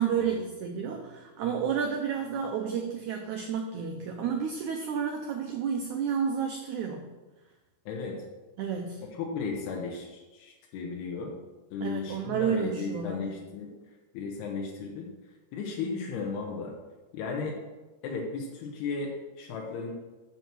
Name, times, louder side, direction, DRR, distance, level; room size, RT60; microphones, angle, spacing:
voice 1, 0.0-7.1 8.6-9.0 11.8-13.2, right 7 dB, 85° right, 3 dB, 1.7 m, -31 dB
voice 2, 7.9-8.2 9.0-11.4 11.7-13.7 14.1-15.1 15.5-16.7 17.1-17.6 18.0-19.9, left 4 dB, 90° left, -1 dB, 3.2 m, -35 dB
8.9 x 4.6 x 7.3 m, 1.2 s
omnidirectional pair, 4.5 m